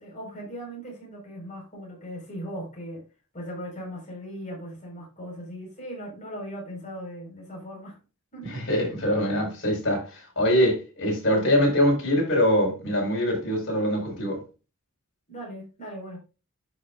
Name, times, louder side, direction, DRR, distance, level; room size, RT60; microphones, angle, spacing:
voice 1, 0.0-3.0 3.3-8.0 8.3-8.5 15.3-16.2, equal, 35° left, 5.0 m, -38 dB
voice 2, 8.4-14.4, equal, 60° left, 5.2 m, -23 dB
11.5 x 6.4 x 2.5 m
head